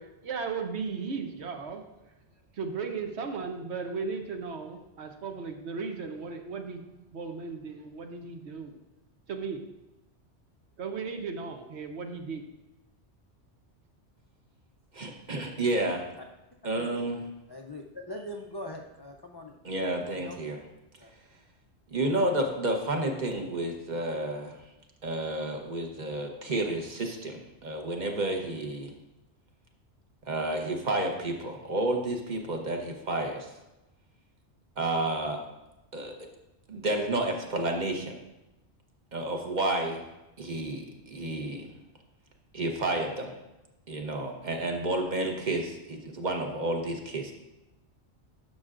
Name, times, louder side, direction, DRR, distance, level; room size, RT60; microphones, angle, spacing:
voice 1, 0.0-1.8 2.6-6.8 7.1-8.8 9.3-9.6 10.8-12.4, right 5 dB, 75° right, 5 dB, 1.1 m, -36 dB
voice 2, 14.9-16.1 16.6-17.2 19.6-20.6 21.9-24.6 25.0-28.9 30.2-33.5 34.8-35.4 35.9-36.1 36.7-38.2 39.1-40.0 40.4-41.7 42.5-43.3 43.9-47.3, right 2 dB, 40° right, 2 dB, 1.1 m, -30 dB
voice 3, 17.5-19.6 20.0-20.4 21.0-21.1, left 1 dB, 40° left, 2 dB, 0.3 m, -41 dB
11.5 x 6.5 x 2.5 m, 0.97 s
omnidirectional pair, 1.2 m